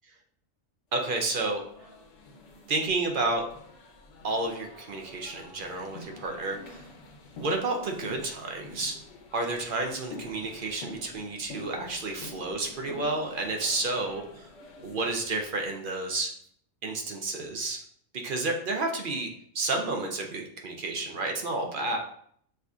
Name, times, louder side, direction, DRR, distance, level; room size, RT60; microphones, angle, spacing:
voice 1, 0.9-1.6 2.7-3.5 4.2-6.8 7.4-8.9 9.3-14.5 14.8-16.3 16.8-17.8 18.2-22.0, right 2 dB, 60° right, 3 dB, 0.5 m, -31 dB
sound 1, 1.1-15.8, left 2 dB, 65° left, 1.0 m, -47 dB
6.4 x 2.6 x 2.4 m, 0.65 s
omnidirectional pair, 1.4 m